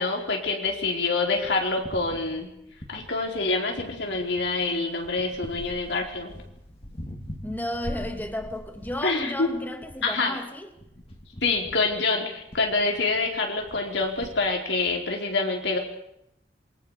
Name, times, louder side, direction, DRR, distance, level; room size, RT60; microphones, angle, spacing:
voice 1, 0.0-2.5 2.9-6.3 9.0-9.5 10.0-10.4 11.4-15.8, left 3 dB, 90° left, 4.7 m, -26 dB
sound 1, 1.3-3.4 3.8-14.4, equal, 35° left, 3.5 m, -43 dB
voice 2, 7.4-10.7, left 1 dB, 10° left, 2.2 m, -33 dB
27.0 x 24.0 x 5.1 m
head